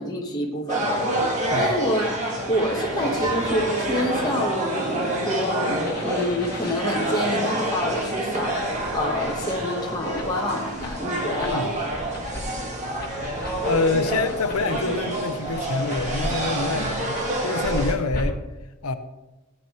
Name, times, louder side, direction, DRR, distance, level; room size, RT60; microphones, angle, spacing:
voice 1, 0.0-5.7 6.0-11.7, left 1 dB, 20° left, -1 dB, 1.2 m, -28 dB
sound 1, 0.7-17.9, right 1 dB, 35° right, 1.7 m, -27 dB
sound 2, 5.8-18.2, left 1 dB, 45° left, 1.5 m, -37 dB
voice 2, 13.6-18.4 18.8-18.9, left 3 dB, 85° left, 9 dB, 0.8 m, -26 dB
16.5 x 9.1 x 3.1 m, 1.1 s
head